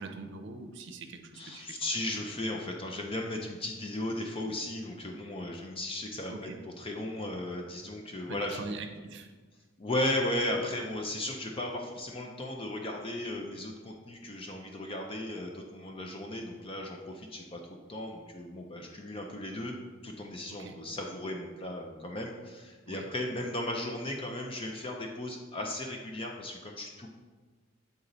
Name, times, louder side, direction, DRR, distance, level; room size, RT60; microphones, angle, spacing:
voice 1, 0.0-1.9 6.3-6.6 8.2-9.3 20.6-20.8 22.9-23.1, right 3 dB, 65° right, 6 dB, 0.6 m, -43 dB
voice 2, 1.3-8.6 9.8-17.6 17.9-19.8 20.0-27.2, left 1 dB, 30° left, 1 dB, 0.6 m, -36 dB
8.2 x 4.0 x 3.9 m, 1.4 s
head